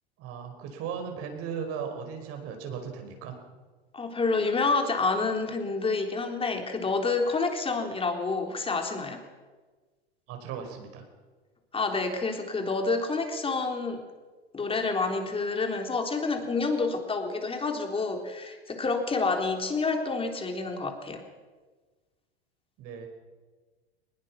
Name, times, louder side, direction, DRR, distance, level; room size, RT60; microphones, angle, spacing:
voice 1, 0.2-3.3 10.3-11.0 22.8-23.1, right 7 dB, 50° right, 4 dB, 5.1 m, -37 dB
voice 2, 3.9-9.2 11.7-14.0 14.5-21.2, left 3 dB, 20° left, 4 dB, 3.6 m, -28 dB
21.5 x 20.5 x 6.1 m, 1.3 s
hypercardioid pair, 95°, 31 cm